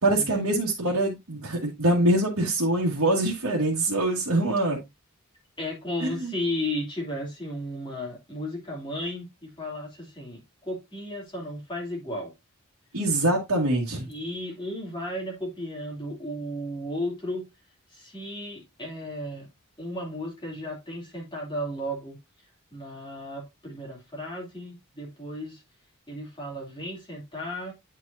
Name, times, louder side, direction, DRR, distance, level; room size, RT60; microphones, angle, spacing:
voice 1, 0.0-4.8 6.0-6.3 12.9-14.1, right 1 dB, 70° right, 1.7 m, -24 dB
voice 2, 5.6-12.3 14.1-17.5 17.9-19.5 19.8-22.2 22.7-25.6 26.1-27.7, left 1 dB, 20° left, 2.6 m, -34 dB
9.6 x 4.7 x 2.6 m
head